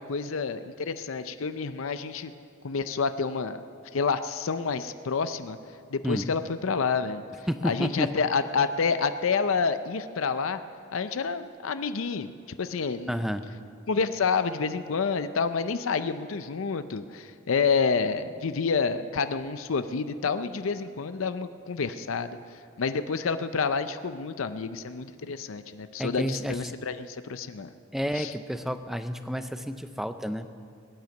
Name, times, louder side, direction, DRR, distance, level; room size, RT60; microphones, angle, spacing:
voice 1, 0.0-2.3 2.6-3.6 3.9-5.6 5.9-7.2 7.6-10.6 10.9-12.3 12.6-13.2 13.9-27.7 28.1-28.3, left 5 dB, 70° left, 11 dB, 0.5 m, -28 dB
voice 2, 7.5-8.1 13.1-13.5 26.0-26.7 27.9-30.5, equal, ahead, 9 dB, 0.5 m, -30 dB
20.5 x 9.4 x 7.2 m, 2.3 s
head